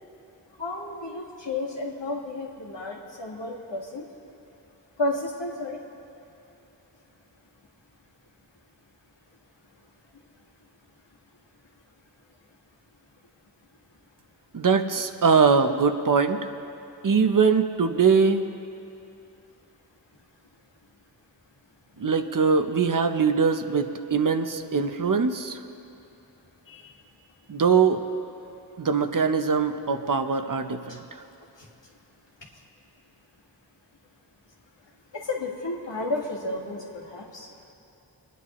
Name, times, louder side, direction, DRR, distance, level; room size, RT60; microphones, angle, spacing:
voice 1, 0.6-4.1 5.0-5.8 26.7-27.0 30.9-31.0 31.6-31.7 35.1-37.5, left 2 dB, 90° left, -2 dB, 1.8 m, -32 dB
voice 2, 14.5-16.5 17.0-18.5 22.0-25.6 27.5-28.0 28.8-31.2, right 5 dB, 50° right, 7 dB, 0.7 m, -22 dB
28.5 x 9.9 x 3.0 m, 2.7 s
wide cardioid pair, 80°, 42 cm